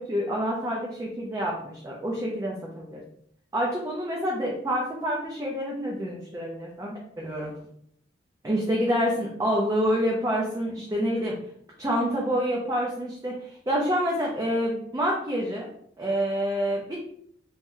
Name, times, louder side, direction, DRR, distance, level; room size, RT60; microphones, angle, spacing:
voice 1, 0.0-3.0 3.5-7.5 8.4-11.4 11.8-15.7 16.0-17.0, equal, 20° right, -3 dB, 0.4 m, -27 dB
2.9 x 2.0 x 3.6 m, 0.68 s
head